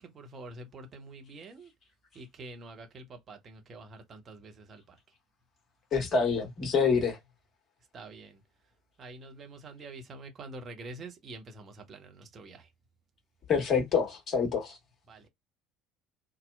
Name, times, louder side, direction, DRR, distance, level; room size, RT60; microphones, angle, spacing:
voice 1, 0.0-1.7 2.1-5.0 7.9-8.4 9.0-12.7 15.1-15.3, right 2 dB, 35° right, 0.9 m, -46 dB
voice 2, 5.9-7.2 13.5-14.8, left 5 dB, 35° left, 1.2 m, -26 dB
2.8 x 2.0 x 2.2 m
figure-of-eight pair, 60°, 0 cm